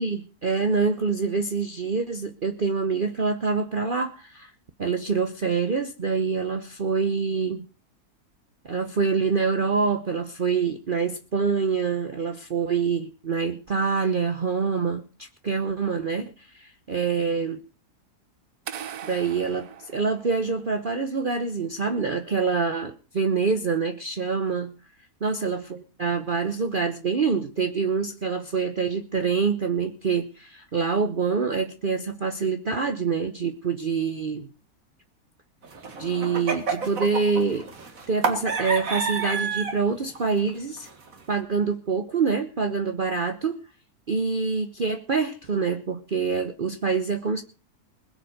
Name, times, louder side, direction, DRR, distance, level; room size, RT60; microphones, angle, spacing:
voice 1, 0.0-4.5 4.8-7.7 8.7-17.6 19.0-24.7 25.2-34.5 36.0-37.7 38.1-40.9 41.3-43.7 44.1-47.4, right 5 dB, 40° right, 7 dB, 1.0 m, -26 dB
sound 1, 18.7-20.8, right 9 dB, 75° right, 1.4 m, -40 dB
sound 2, 35.6-39.8 40.2-40.5 40.8-41.4, right 5 dB, 60° right, 2.3 m, -29 dB
21.0 x 7.6 x 6.5 m, 0.34 s
omnidirectional pair, 1.6 m